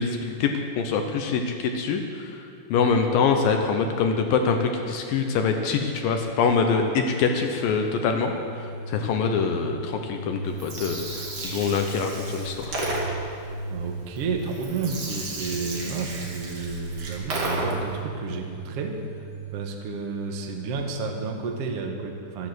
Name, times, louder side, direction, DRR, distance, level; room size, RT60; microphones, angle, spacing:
voice 1, 0.0-2.4 2.7-12.8, left 5 dB, 75° left, 4 dB, 2.4 m, -24 dB
sound 1, 6.7-21.7, right 2 dB, 30° left, 4.5 m, -38 dB
Gurgling, 10.4-18.0, right 2 dB, 40° right, 2.5 m, -34 dB
voice 2, 13.7-19.0 19.5-22.5, right 4 dB, 75° right, 3 dB, 1.4 m, -31 dB
14.0 x 10.5 x 7.8 m, 2.4 s
omnidirectional pair, 4.5 m